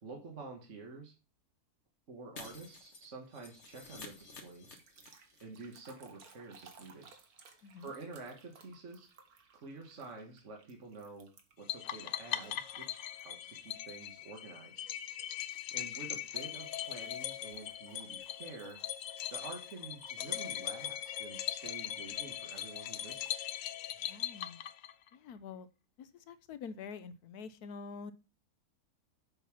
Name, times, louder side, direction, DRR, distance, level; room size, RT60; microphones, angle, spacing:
voice 1, 0.0-1.1 2.1-4.8 5.4-7.1 7.5-9.1 9.5-11.3 11.6-14.9 15.7-18.8 19.3-23.5, right 3 dB, 50° right, 1 dB, 1.8 m, -49 dB
Shatter, 2.4-5.4 5.7-5.8 6.1-6.2, left 3 dB, 50° left, 1.9 m, -51 dB
sound 1, 4.8-11.7 12.4-13.2 13.7-14.0 15.5-23.4, right 5 dB, 70° right, 1.8 m, -62 dB
sound 2, 11.7-25.1, left 11 dB, 65° left, 1.0 m, -40 dB
voice 2, 24.1-24.6 25.1-25.7 26.0-28.1, left 5 dB, 85° left, 13 dB, 1.3 m, -46 dB
7.5 x 5.6 x 5.9 m, 0.32 s
omnidirectional pair, 1.6 m